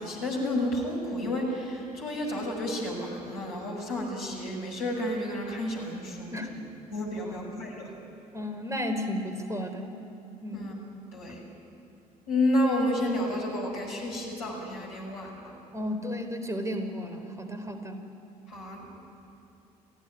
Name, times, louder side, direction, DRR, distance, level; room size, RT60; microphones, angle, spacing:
voice 1, 0.0-6.6 6.9-7.9 10.5-10.7 11.1-11.4 12.3-15.5 18.5-18.9, left 1 dB, 80° left, -1 dB, 5.9 m, -31 dB
voice 2, 7.2-7.6 8.3-10.0 10.4-10.8 15.7-18.0, left 1 dB, 15° right, 7 dB, 3.9 m, -34 dB
28.5 x 16.0 x 9.9 m, 2.8 s
figure-of-eight pair, 55°, 20 cm